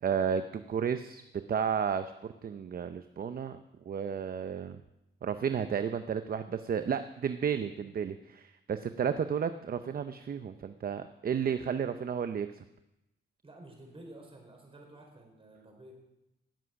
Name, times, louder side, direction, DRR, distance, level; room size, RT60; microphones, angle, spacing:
voice 1, 0.0-1.2 1.5-3.6 3.9-4.8 5.2-12.5, right 7 dB, 45° right, 10 dB, 0.6 m, -32 dB
voice 2, 13.4-15.9, right 1 dB, 25° right, 1 dB, 4.4 m, -51 dB
18.0 x 7.7 x 5.9 m, 0.92 s
cardioid pair, 100°, 21 cm